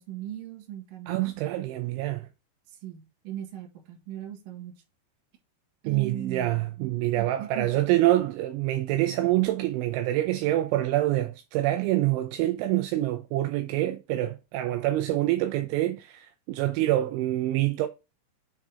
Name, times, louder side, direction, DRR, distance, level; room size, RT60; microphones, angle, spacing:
voice 1, 0.0-1.3 2.7-4.8 5.8-6.7 7.2-7.8, right 11 dB, 60° right, 2.3 m, -38 dB
voice 2, 1.1-2.3 5.9-17.9, right 15 dB, 85° right, 2.8 m, -26 dB
7.3 x 3.8 x 3.7 m
omnidirectional pair, 5.7 m